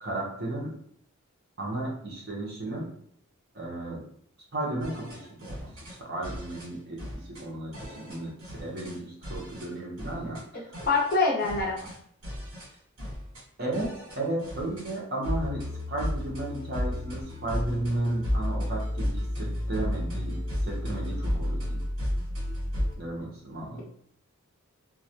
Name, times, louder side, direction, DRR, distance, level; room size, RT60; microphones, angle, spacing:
voice 1, 0.0-0.7 1.6-2.9 3.5-4.1 4.5-5.7 6.0-10.8 13.6-21.8 23.0-23.8, right 1 dB, 45° right, -2 dB, 0.7 m, -34 dB
sound 1, 4.8-6.0 6.2-6.7 7.0-7.4 7.7-9.0 9.2-9.7 10.0-10.4 10.7-12.0 12.2-12.7 13.0-13.4 13.7-15.0 15.2-22.9, left 1 dB, 65° right, 1.2 m, -33 dB
voice 2, 10.9-11.9, left 3 dB, 45° left, -3 dB, 0.6 m, -25 dB
2.3 x 2.1 x 2.7 m, 0.66 s
head